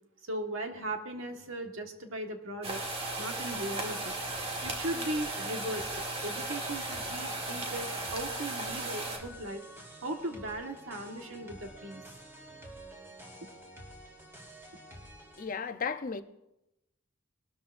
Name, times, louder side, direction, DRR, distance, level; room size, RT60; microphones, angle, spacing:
voice 1, 0.3-2.8 3.2-4.1 4.6-9.6 10.0-12.0, right 1 dB, 80° right, 1.5 m, -38 dB
sound 1, 2.6-9.2, right 2 dB, 30° right, 1.5 m, -36 dB
sound 2, 3.9-15.5, equal, 15° right, 3.1 m, -50 dB
voice 2, 15.4-16.2, left 5 dB, 40° left, 0.6 m, -34 dB
19.5 x 13.0 x 2.6 m
head